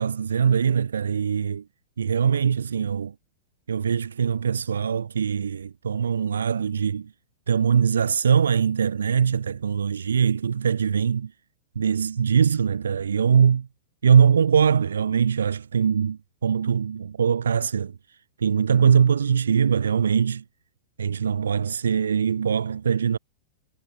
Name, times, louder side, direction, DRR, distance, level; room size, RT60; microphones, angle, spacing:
voice 1, 0.0-1.6 2.0-3.1 3.7-7.1 7.5-11.3 11.8-13.7 14.0-18.0 18.4-20.4 21.0-23.2, right 7 dB, 70° right, 4.2 m, -22 dB
figure-of-eight pair, 100°, 0 cm